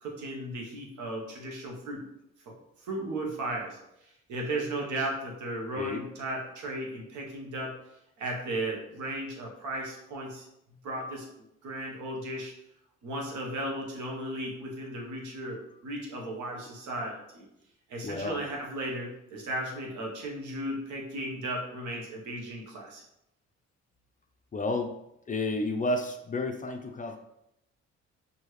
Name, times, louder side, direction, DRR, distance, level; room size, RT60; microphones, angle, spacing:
voice 1, 0.0-2.0 2.5-2.6 2.8-3.8 4.3-7.7 8.2-10.5 10.8-11.3 11.6-12.5 13.0-17.4 17.9-23.0, right 1 dB, 80° right, -1 dB, 1.2 m, -35 dB
voice 2, 18.0-18.4 24.5-25.0 25.3-27.2, left 2 dB, 25° left, 4 dB, 0.5 m, -31 dB
4.6 x 2.8 x 3.2 m, 0.82 s
cardioid pair, 90°, 30 cm